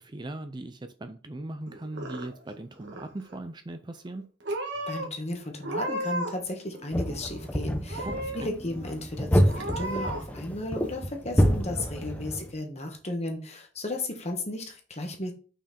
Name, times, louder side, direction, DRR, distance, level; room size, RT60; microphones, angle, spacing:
voice 1, 0.0-4.2 8.0-8.5, right 2 dB, 25° right, 0.5 m, -39 dB
Purr / Meow, 1.7-2.5 2.8-3.4 4.1-4.2 4.4-5.1 5.6-6.5 6.7-7.5 7.9-8.5 8.9-9.0 9.5-10.2, right 1 dB, 65° right, 1.6 m, -34 dB
voice 2, 4.9-8.1 8.3-15.3, left 1 dB, 35° left, 1.5 m, -34 dB
sound 1, 6.9-12.5, equal, 10° left, 0.7 m, -28 dB
6.0 x 4.6 x 4.3 m
head